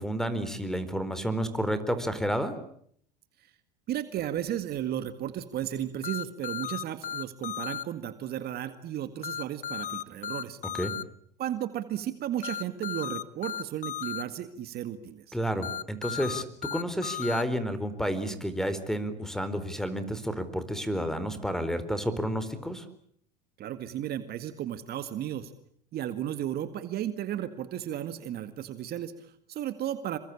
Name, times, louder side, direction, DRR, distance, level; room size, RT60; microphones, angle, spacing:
voice 1, 0.0-2.5 10.7-10.9 15.3-22.9, equal, ahead, 13 dB, 4.3 m, -30 dB
voice 2, 3.9-10.6 11.4-15.4 23.6-25.5 25.9-30.2, right 11 dB, 50° right, 11 dB, 2.0 m, -34 dB
sound 1, 6.0-7.8 9.2-11.0 12.4-14.2 15.6-17.4, left 9 dB, 35° left, 1.2 m, -35 dB
28.0 x 23.5 x 8.6 m, 0.66 s
hypercardioid pair, 85°, 21 cm